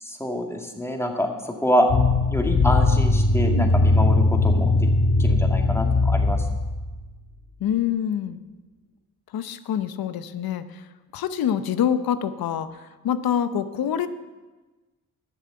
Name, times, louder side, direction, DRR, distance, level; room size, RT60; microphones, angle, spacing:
voice 1, 0.0-1.9 2.3-4.7 5.2-6.4, equal, 5° left, 2 dB, 2.0 m, -26 dB
sound 1, 1.9-7.1, left 2 dB, 60° left, 1.5 m, -20 dB
voice 2, 7.6-8.4 9.3-10.8 11.1-14.1, left 9 dB, 75° left, 12 dB, 0.8 m, -26 dB
12.0 x 6.9 x 7.6 m, 1.2 s
cardioid pair, 70°, 36 cm